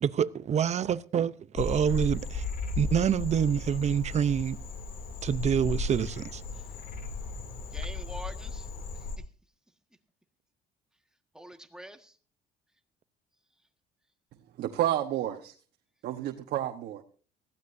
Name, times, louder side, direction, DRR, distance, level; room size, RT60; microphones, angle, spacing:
voice 1, 0.0-2.4 2.8-4.6 5.2-6.4, right 8 dB, 40° right, 0.7 m, -27 dB
Frog, 1.5-9.2, left 4 dB, 60° left, 2.8 m, -35 dB
voice 2, 7.7-8.7 8.9-9.1 11.3-12.2, right 1 dB, 5° right, 1.6 m, -45 dB
voice 3, 14.6-15.5 16.0-17.0, right 12 dB, 70° right, 1.2 m, -30 dB
19.0 x 15.0 x 2.7 m
cardioid pair, 110°, 17 cm